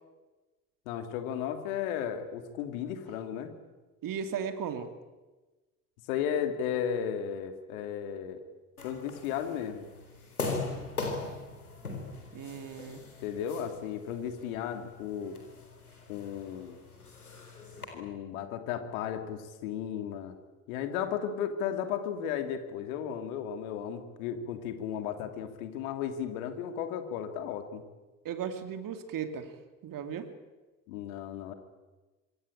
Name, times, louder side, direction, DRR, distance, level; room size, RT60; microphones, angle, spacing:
voice 1, 0.9-3.5 6.1-8.4 8.8-9.9 13.2-15.4 16.1-16.8 17.9-20.3 20.7-27.8 30.9-31.5, left 8 dB, 70° left, 8 dB, 2.8 m, -34 dB
voice 2, 4.0-4.9 12.3-13.0 28.2-29.5 29.8-30.3, right 7 dB, 50° right, 8 dB, 2.6 m, -36 dB
sound 1, 8.8-17.8, left 3 dB, 90° left, 4.1 m, -40 dB
25.5 x 24.5 x 8.8 m, 1.2 s
figure-of-eight pair, 55°, 43 cm